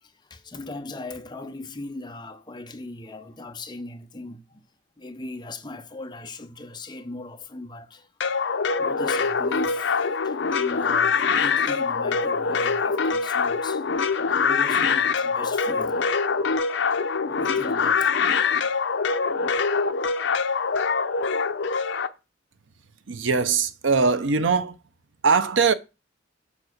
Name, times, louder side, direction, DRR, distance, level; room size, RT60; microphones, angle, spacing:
voice 1, 0.0-4.6 5.0-8.1 8.8-16.0 16.8-18.1, left 2 dB, 25° left, 0.8 m, -38 dB
sound 1, 8.2-22.1, left 5 dB, 70° left, 0.6 m, -24 dB
voice 2, 23.1-24.8 25.2-25.7, right 5 dB, 80° right, 0.7 m, -21 dB
7.2 x 4.7 x 6.5 m
head